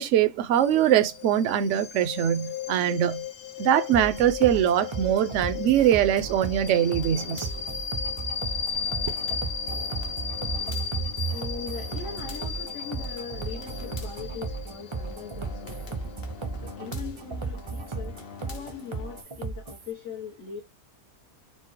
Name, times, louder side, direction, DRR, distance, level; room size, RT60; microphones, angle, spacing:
voice 1, 0.0-3.2 3.6-7.5, right 10 dB, 65° right, 0.9 m, -22 dB
sound 1, 0.5-16.8, left 7 dB, 85° left, 1.2 m, -36 dB
sound 2, 3.9-19.9, right 4 dB, 45° right, 0.4 m, -35 dB
sound 3, 5.8-19.2, left 6 dB, 50° left, 1.0 m, -46 dB
voice 2, 11.3-16.1 16.6-20.6, left 6 dB, 65° left, 1.4 m, -40 dB
4.5 x 2.1 x 4.4 m
omnidirectional pair, 1.4 m